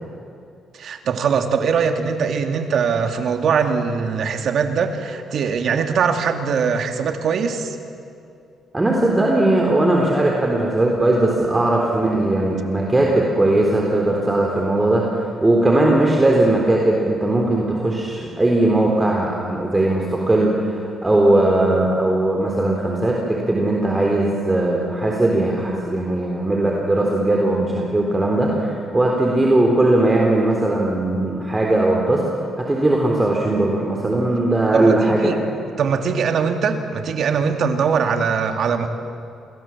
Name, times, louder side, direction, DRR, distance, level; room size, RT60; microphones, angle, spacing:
voice 1, 0.8-7.8 34.7-35.4 35.8-38.9, right 6 dB, 65° right, 6 dB, 2.4 m, -21 dB
voice 2, 8.7-32.2 32.6-35.3, right 2 dB, 15° right, -1 dB, 3.7 m, -19 dB
28.0 x 22.0 x 7.4 m, 2.5 s
cardioid pair, 90°, 0 cm